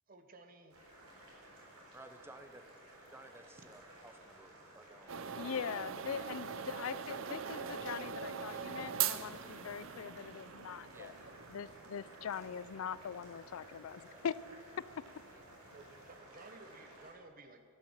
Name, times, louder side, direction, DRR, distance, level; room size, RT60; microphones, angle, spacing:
voice 1, 0.1-0.8 2.4-2.5 15.7-17.7, right 2 dB, 40° right, 7 dB, 1.0 m, -56 dB
Boiling, 0.7-17.1, right 1 dB, 90° right, 4.0 m, -56 dB
voice 2, 1.9-2.6 3.1-6.2 7.1-7.7 10.9-11.2 14.1-14.2, right 2 dB, 10° right, 8 dB, 0.7 m, -56 dB
sound 1, 5.1-16.2, right 8 dB, 60° right, 0.6 m, -43 dB
voice 3, 5.4-11.1 11.5-14.3, left 7 dB, 75° left, 19 dB, 0.4 m, -42 dB
11.5 x 10.5 x 7.3 m, 2.3 s
head